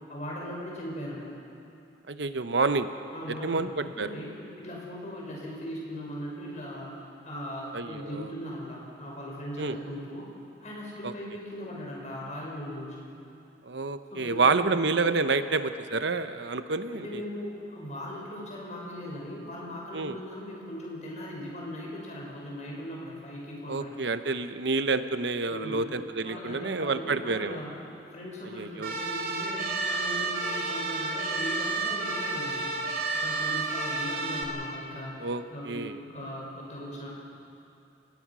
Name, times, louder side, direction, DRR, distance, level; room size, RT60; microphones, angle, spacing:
voice 1, 0.1-1.3 3.1-6.9 7.2-10.3 10.6-13.0 14.1-14.8 16.9-24.0 25.5-25.8 26.2-27.7 28.1-32.7 33.1-37.1, equal, 40° left, -3 dB, 6.2 m, -39 dB
voice 2, 2.1-2.9 3.4-4.1 7.7-8.3 9.6-9.8 11.0-11.1 13.6-17.2 19.9-20.2 23.7-27.6 28.5-28.9 35.2-36.0, right 3 dB, 70° right, 10 dB, 0.9 m, -28 dB
sound 1, 28.8-34.4, right 3 dB, 55° right, 2.9 m, -30 dB
29.5 x 18.0 x 6.2 m, 2.7 s
head